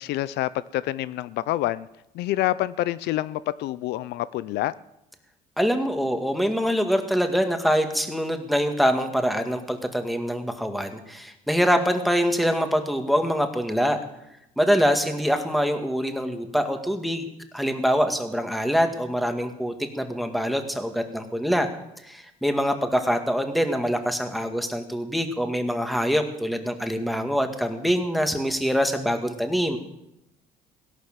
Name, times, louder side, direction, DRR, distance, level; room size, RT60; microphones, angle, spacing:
voice 1, 0.0-1.9 2.1-4.7, left 15 dB, 80° left, 17 dB, 0.5 m, -27 dB
voice 2, 5.6-14.0 14.6-17.2 17.5-21.7 22.0-29.8, equal, ahead, 6 dB, 2.0 m, -24 dB
17.0 x 11.5 x 7.4 m, 0.85 s
cardioid pair, 110°, 17 cm